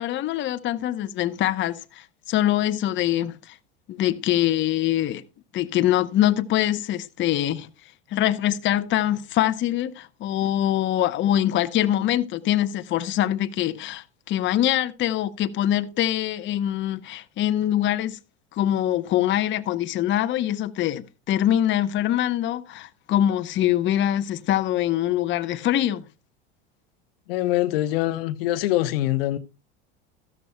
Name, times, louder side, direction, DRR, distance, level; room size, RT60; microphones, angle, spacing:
voice 1, 0.0-3.6 3.9-5.2 5.5-7.7 8.1-18.2 18.5-26.0, left 12 dB, 40° left, 0.8 m, -24 dB
voice 2, 27.3-29.4, left 15 dB, 70° left, 0.9 m, -24 dB
14.0 x 13.0 x 2.3 m
hypercardioid pair, 85°, 30 cm